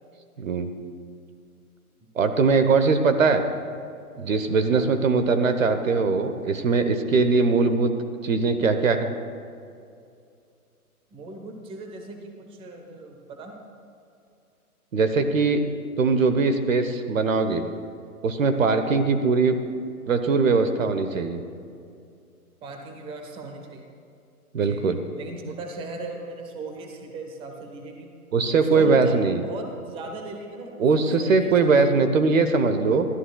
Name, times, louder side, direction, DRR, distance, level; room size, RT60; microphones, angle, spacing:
voice 1, 0.4-0.7 2.2-3.4 4.2-7.9 8.2-9.1 14.9-15.6 16.0-17.6 18.2-19.6 20.1-21.4 24.5-25.0 28.3-29.4 30.8-33.1, right 4 dB, 60° right, 8 dB, 1.1 m, -21 dB
voice 2, 11.1-13.5 18.8-19.0 22.6-23.9 24.6-28.1 28.6-31.7, right 2 dB, 10° right, 3 dB, 1.0 m, -38 dB
24.5 x 13.0 x 2.3 m, 2.4 s
figure-of-eight pair, 125°, 45 cm